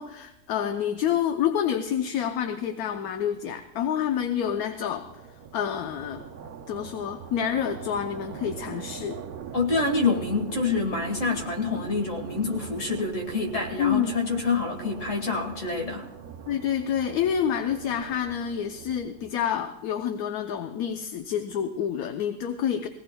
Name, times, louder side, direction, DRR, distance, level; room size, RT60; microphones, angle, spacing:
voice 1, 0.0-5.1 5.5-6.2 6.7-9.2 13.8-14.1 16.5-22.9, left 9 dB, 75° left, 7 dB, 1.1 m, -28 dB
sound 1, 3.4-19.6, right 8 dB, 80° right, 1.2 m, -42 dB
voice 2, 9.5-16.1, left 4 dB, 55° left, 2 dB, 2.0 m, -27 dB
21.0 x 17.0 x 2.2 m, 0.97 s
omnidirectional pair, 1.6 m